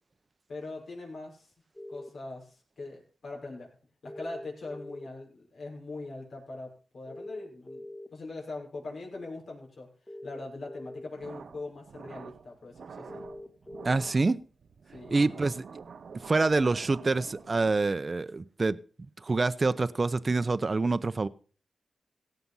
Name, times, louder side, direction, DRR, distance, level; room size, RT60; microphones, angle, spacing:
voice 1, 0.5-1.5 1.9-3.7 4.0-13.2 14.9-15.4, left 2 dB, 70° left, 6.1 m, -42 dB
sound 1, 1.8-2.1 4.1-5.1 7.1-8.1 10.1-11.1 13.1-14.0, left 1 dB, 25° left, 1.7 m, -43 dB
sound 2, 11.1-18.0, right 5 dB, 75° right, 0.8 m, -47 dB
voice 2, 13.8-14.4 15.1-15.6 16.3-18.8 19.2-21.3, right 3 dB, 40° right, 0.7 m, -26 dB
17.5 x 6.9 x 5.6 m
cardioid pair, 65°, 0 cm